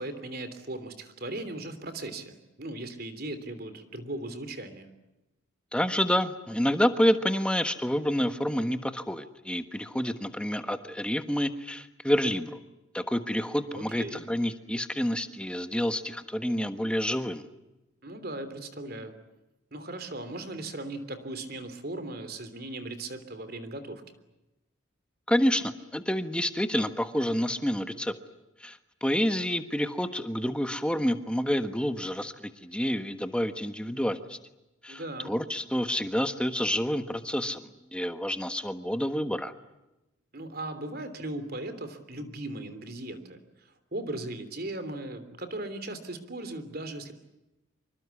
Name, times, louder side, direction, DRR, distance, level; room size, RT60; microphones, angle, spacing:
voice 1, 0.0-4.9 13.7-14.2 18.0-19.1 19.7-24.0 34.9-35.3 40.3-47.1, right 2 dB, 45° right, 10 dB, 3.2 m, -38 dB
voice 2, 5.7-12.6 12.9-17.4 25.3-28.1 28.6-34.4 34.8-39.5, equal, 5° left, 9 dB, 1.3 m, -28 dB
26.5 x 24.0 x 8.5 m, 0.97 s
head